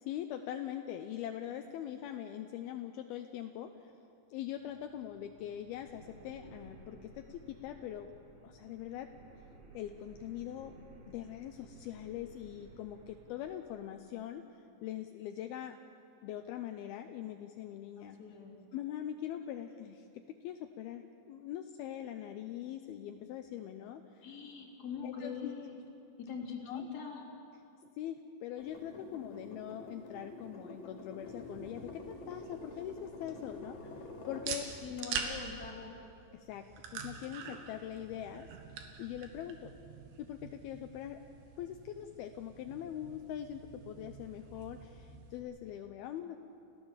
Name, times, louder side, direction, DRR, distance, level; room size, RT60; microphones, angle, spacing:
voice 1, 0.0-3.9 4.3-8.1 8.4-9.1 9.7-10.7 11.1-15.8 16.2-18.2 18.7-24.3 25.0-25.5 26.7-26.9 28.0-34.8 35.2-35.3 36.3-38.5 39.0-39.7 40.2-41.2 41.6-46.4, left 11 dB, 80° left, 6 dB, 2.3 m, -42 dB
sound 1, 4.3-13.9, right 2 dB, 75° right, 5.6 m, -57 dB
voice 2, 18.0-18.6 24.2-25.8 26.2-27.2 34.8-35.9, left 6 dB, 25° left, -2 dB, 2.8 m, -43 dB
sound 2, 28.6-34.5 35.0-35.1, left 2 dB, 45° left, 3.4 m, -47 dB
sound 3, 31.1-45.4, right 6 dB, 90° right, 3.9 m, -46 dB
29.5 x 15.0 x 7.3 m, 2.6 s
omnidirectional pair, 5.2 m